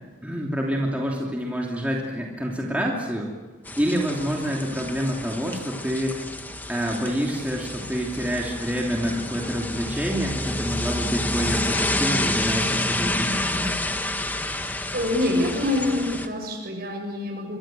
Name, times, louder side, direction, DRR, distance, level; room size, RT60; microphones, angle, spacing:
voice 1, 0.2-3.3 3.8-6.2 6.7-13.7, equal, 10° right, -2 dB, 2.9 m, -27 dB
sound 1, 3.7-16.3, left 1 dB, 10° left, 1.4 m, -29 dB
voice 2, 14.9-17.6, left 1 dB, 55° right, 2 dB, 7.2 m, -26 dB
25.5 x 23.5 x 7.7 m, 1.3 s
head